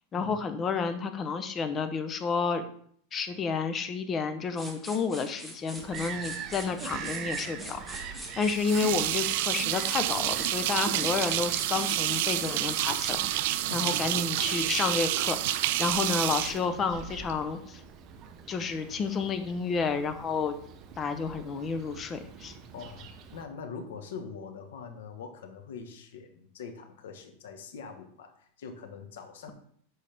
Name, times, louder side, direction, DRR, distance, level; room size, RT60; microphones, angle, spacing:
voice 1, 0.1-2.6 3.1-17.8 18.5-20.5 21.0-22.5, left 5 dB, 25° left, 9 dB, 0.7 m, -31 dB
sound 1, 4.6-14.3, right 1 dB, ahead, 1.6 m, -44 dB
Bird vocalization bird call bird song, 5.8-23.5, right 7 dB, 35° right, 0.8 m, -44 dB
sound 2, 8.5-17.3, right 15 dB, 60° right, 0.4 m, -29 dB
voice 2, 13.7-14.1 22.7-29.5, left 5 dB, 85° left, 6 dB, 1.3 m, -43 dB
11.0 x 4.1 x 3.5 m, 0.62 s
supercardioid pair, 145°, 0 cm